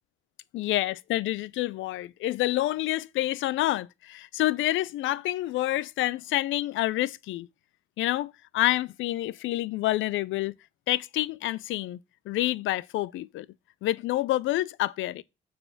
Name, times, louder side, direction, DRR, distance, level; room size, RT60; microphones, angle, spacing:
voice 1, 0.5-7.5 8.0-10.5 10.9-12.0 12.3-13.5 13.8-15.2, left 15 dB, 80° left, 0.4 m, -28 dB
6.7 x 3.4 x 5.8 m
cardioid pair, 90°, 20 cm